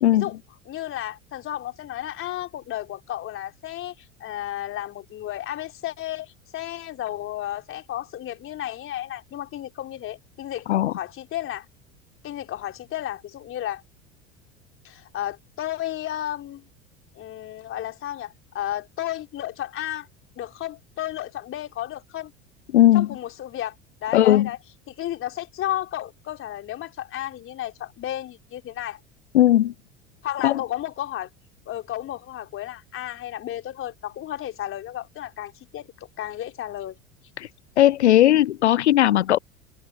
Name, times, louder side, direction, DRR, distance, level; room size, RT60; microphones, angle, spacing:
voice 1, 0.7-11.7 12.2-13.8 14.8-16.7 17.1-20.1 20.4-22.3 22.9-23.7 24.0-24.6 24.9-29.0 30.2-31.3 31.7-37.0, left 12 dB, 35° left, 3.9 m, -33 dB
voice 2, 22.7-23.1 24.1-24.5 29.3-29.7 30.4-30.6 37.4-37.5 37.8-39.4, left 13 dB, 70° left, 0.5 m, -17 dB
figure-of-eight pair, 75°, 35 cm